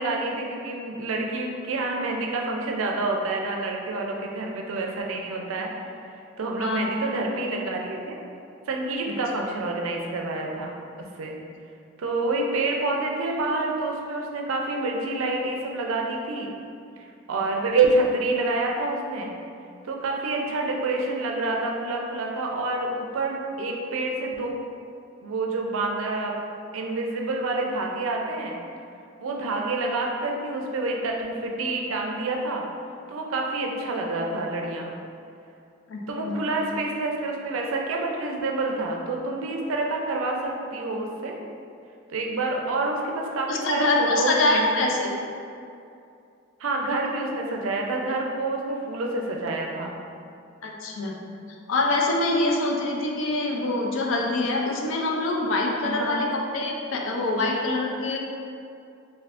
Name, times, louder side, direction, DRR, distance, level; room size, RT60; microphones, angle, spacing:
voice 1, 0.0-5.7 6.4-8.2 8.7-10.7 11.0-11.4 12.0-16.5 17.3-19.3 19.8-24.6 25.2-26.3 26.7-28.5 29.2-32.6 33.1-34.9 36.1-41.4 42.1-45.1 46.6-49.9 55.8-56.3, right 2 dB, 85° right, 0 dB, 0.4 m, -27 dB
voice 2, 6.6-6.9 35.9-36.5 43.5-45.1 50.6-51.1 51.7-58.2, left 2 dB, 70° left, -1 dB, 0.4 m, -25 dB
3.4 x 2.6 x 2.5 m, 2.5 s
head